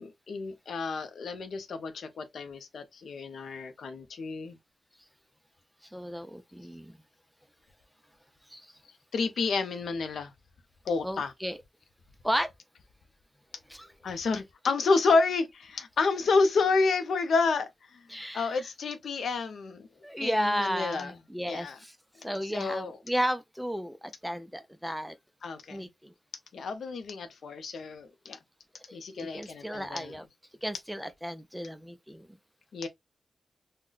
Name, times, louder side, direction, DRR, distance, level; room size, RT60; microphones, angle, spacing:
voice 1, 0.0-4.6 9.1-10.3 10.9-11.3 14.0-18.0 18.3-19.9 20.2-21.1 21.4-21.8 22.5-23.0 25.4-25.9 26.5-28.4 28.9-30.1 32.7-32.9, left 4 dB, 85° left, 0.5 m, -29 dB
voice 2, 5.8-7.0 8.5-8.7 11.0-11.6 12.2-12.5 13.7-13.9 18.1-18.7 20.0-22.0 22.2-25.2 25.7-26.1 28.9-30.2 30.6-32.3, equal, ahead, 0.3 m, -33 dB
3.8 x 2.1 x 2.3 m
wide cardioid pair, 130°, 0 cm